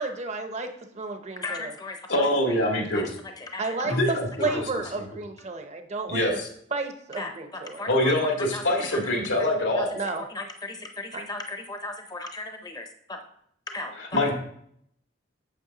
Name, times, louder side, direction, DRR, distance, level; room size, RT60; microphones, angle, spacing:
voice 1, 0.0-1.7 3.6-6.2 6.7-7.8 9.9-10.2 11.1-11.2, right 3 dB, 35° right, 6 dB, 0.7 m, -32 dB
voice 2, 1.4-2.6 2.9-3.0 3.4-4.0 4.4-4.6 7.2-9.1 9.8-9.9 10.3-13.2 13.7-14.3, left 2 dB, 20° left, 5 dB, 0.6 m, -37 dB
voice 3, 2.1-3.1 3.8-4.6 6.1-6.5 7.9-9.9 14.1-14.3, left 1 dB, 90° left, 0 dB, 2.0 m, -24 dB
8.4 x 7.2 x 2.9 m, 0.69 s
head